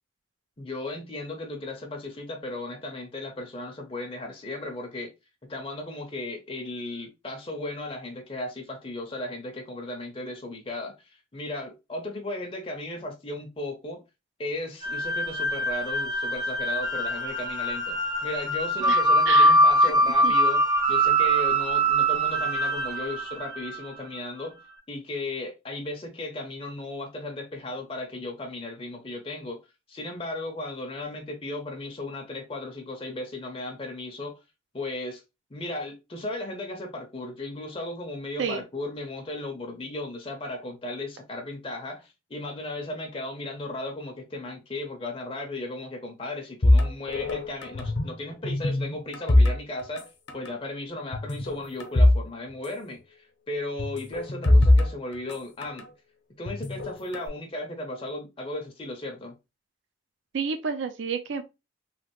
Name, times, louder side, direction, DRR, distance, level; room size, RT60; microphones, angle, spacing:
voice 1, 0.6-5.1 5.5-14.0 14.4-20.6 20.9-24.6 24.9-29.6 29.9-34.4 34.7-35.2 35.5-55.9 56.4-59.3, left 2 dB, 25° left, 0.5 m, -36 dB
sound 1, 14.8-24.0, right 1 dB, 20° right, 0.6 m, -23 dB
voice 2, 18.9-19.5 19.8-19.9 20.2-20.3 38.4-38.6 60.3-61.4, right 5 dB, 70° right, 0.4 m, -30 dB
sound 2, 46.6-48.2 48.4-50.0 50.3-50.5 51.1-52.2 52.5-52.6 53.8-55.9 56.5-57.3, left 1 dB, 60° left, 0.7 m, -22 dB
3.1 x 2.4 x 2.9 m
head